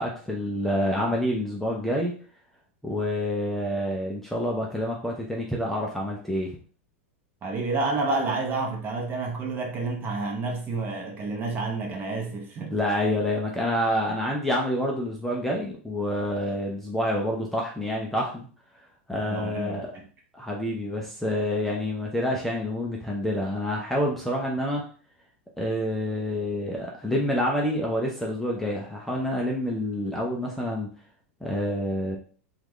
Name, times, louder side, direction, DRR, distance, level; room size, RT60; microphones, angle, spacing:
voice 1, 0.0-2.1 2.8-6.5 12.7-18.5 19.1-19.9 20.4-24.8 25.6-30.9 31.4-32.2, left 1 dB, 5° left, 0.5 m, -27 dB
voice 2, 7.4-12.7 19.2-20.0, right 3 dB, 30° right, 0.9 m, -29 dB
3.4 x 2.4 x 3.1 m
hypercardioid pair, 125°, 7 cm